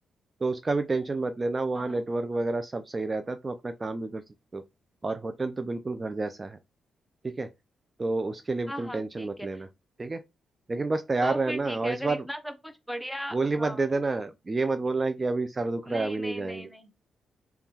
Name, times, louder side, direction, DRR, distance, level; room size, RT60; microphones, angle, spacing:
voice 1, 0.4-4.2 4.5-4.6 5.0-6.6 7.2-7.5 8.0-9.7 10.0-10.2 10.7-12.2 13.3-16.7, right 3 dB, 35° right, 0.3 m, -29 dB
voice 2, 8.7-9.6 11.2-13.9 15.8-16.9, equal, ahead, 0.7 m, -38 dB
3.4 x 2.2 x 2.8 m
hypercardioid pair, 45°, 0 cm